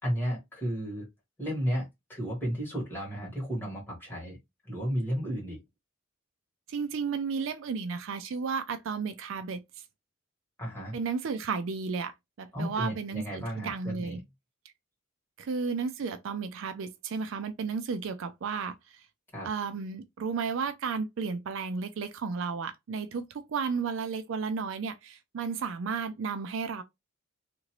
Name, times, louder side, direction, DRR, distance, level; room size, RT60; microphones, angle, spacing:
voice 1, 0.0-1.1 1.4-4.4 4.6-5.6 10.6-10.9 12.5-14.2 19.3-19.5, equal, 10° left, 1.7 m, -33 dB
voice 2, 6.7-9.8 10.9-14.2 15.4-19.0 19.4-26.8, right 5 dB, 65° right, 0.4 m, -33 dB
2.9 x 2.5 x 2.9 m
head